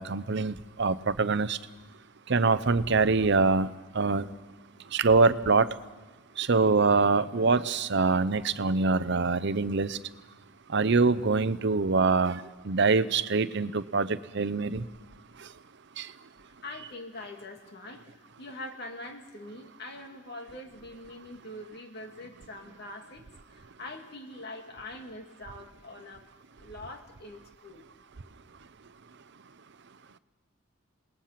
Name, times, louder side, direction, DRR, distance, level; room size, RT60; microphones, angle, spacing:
voice 1, 0.0-1.6 2.3-3.7 3.9-4.3 4.9-5.7 6.4-10.0 10.7-14.8 16.0-16.1, right 4 dB, 55° right, 14 dB, 0.7 m, -24 dB
voice 2, 16.4-23.2 23.5-26.3 26.6-27.8, left 2 dB, 50° left, 3 dB, 2.3 m, -44 dB
28.0 x 19.5 x 5.9 m, 1.3 s
head